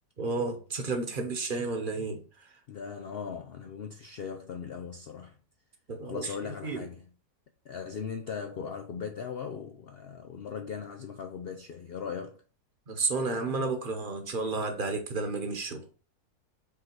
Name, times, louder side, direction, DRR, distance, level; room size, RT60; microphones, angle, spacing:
voice 1, 0.2-2.2 5.9-6.3 6.6-6.8 12.9-15.8, right 3 dB, 35° right, 1.1 m, -31 dB
voice 2, 2.7-5.4 6.0-7.0 7.6-12.4, left 6 dB, 80° left, 0.5 m, -39 dB
5.6 x 4.0 x 4.5 m
omnidirectional pair, 1.7 m